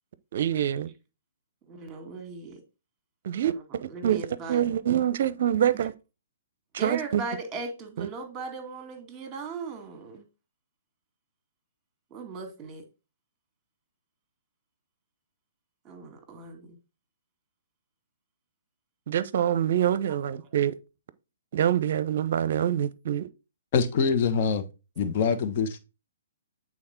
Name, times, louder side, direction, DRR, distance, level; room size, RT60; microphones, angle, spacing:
voice 1, 0.3-0.9 3.2-4.2 4.5-5.9 6.8-7.2 8.0-8.1 19.1-20.7 21.5-23.3, right 10 dB, 50° right, 0.6 m, -25 dB
voice 2, 1.7-2.6 3.4-3.5 3.9-4.6 6.8-10.2 12.1-12.8 15.9-16.8 20.3-20.4, right 4 dB, 20° right, 2.0 m, -38 dB
voice 3, 23.7-24.6 25.0-25.8, left 6 dB, 40° left, 1.3 m, -24 dB
8.6 x 4.1 x 4.4 m
figure-of-eight pair, 125°, 0 cm